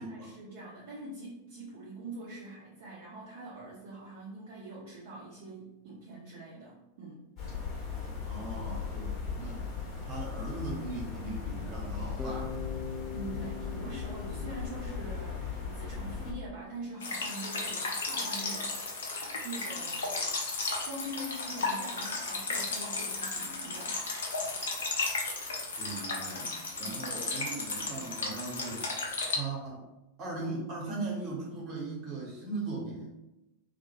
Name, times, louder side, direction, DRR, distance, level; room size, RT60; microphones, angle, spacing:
voice 1, 0.0-7.2 13.1-18.9 19.4-20.1 20.8-24.0 26.8-27.1, right 2 dB, 50° right, -6 dB, 0.5 m, -44 dB
sound 1, 7.4-16.3, left 6 dB, 35° left, 0.9 m, -38 dB
voice 2, 8.2-9.6 10.0-12.6 14.2-14.4 25.8-28.8 29.3-29.8 30.2-33.2, right 3 dB, 35° right, -3 dB, 1.0 m, -39 dB
Bass guitar, 12.2-16.2, left 6 dB, 10° left, 0.3 m, -43 dB
sound 2, 17.0-29.4, left 3 dB, 65° left, 0.5 m, -34 dB
2.1 x 2.1 x 3.0 m, 0.95 s
figure-of-eight pair, 90°, 0 cm